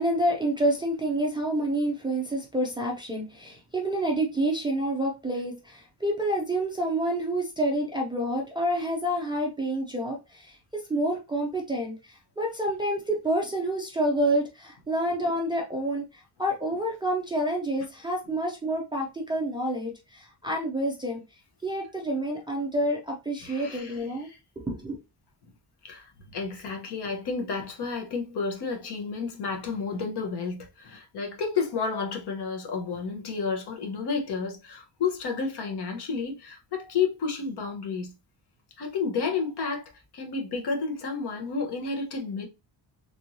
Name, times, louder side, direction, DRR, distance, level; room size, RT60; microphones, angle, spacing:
voice 1, 0.0-21.2 21.6-24.3 24.6-25.0, right 1 dB, 10° right, 0.4 m, -28 dB
voice 2, 23.4-24.4 25.4-25.5 25.8-38.1 38.8-42.5, left 5 dB, 60° left, 1.0 m, -31 dB
3.4 x 3.1 x 2.6 m
cardioid pair, 175°, 45 cm